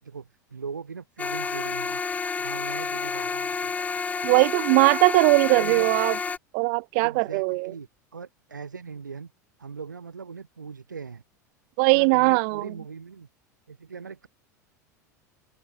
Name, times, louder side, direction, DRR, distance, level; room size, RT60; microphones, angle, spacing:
voice 1, 0.0-2.0 2.4-3.7 5.4-5.9 7.0-9.3 9.6-11.2 11.9-13.3 13.7-14.3, right 5 dB, 80° right, 6.1 m, -40 dB
sound 1, 1.2-6.4, left 5 dB, 15° left, 0.7 m, -30 dB
voice 2, 4.2-6.2 6.5-7.7 11.8-12.7, right 39 dB, 50° right, 0.8 m, -20 dB
figure-of-eight pair, 80°, 10 cm